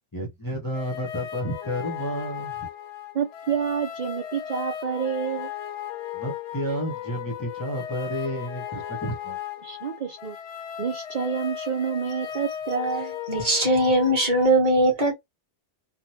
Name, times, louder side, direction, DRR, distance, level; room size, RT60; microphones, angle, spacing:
voice 1, 0.1-2.7 6.1-9.4, equal, 25° left, 0.6 m, -31 dB
sound 1, 0.7-14.5, left 10 dB, 80° left, 1.0 m, -36 dB
voice 2, 3.1-5.5 9.6-10.4 10.8-13.2, right 6 dB, 55° right, 0.5 m, -28 dB
voice 3, 13.3-15.1, right 1 dB, 35° right, 1.3 m, -20 dB
3.1 x 2.1 x 2.7 m
omnidirectional pair, 1.2 m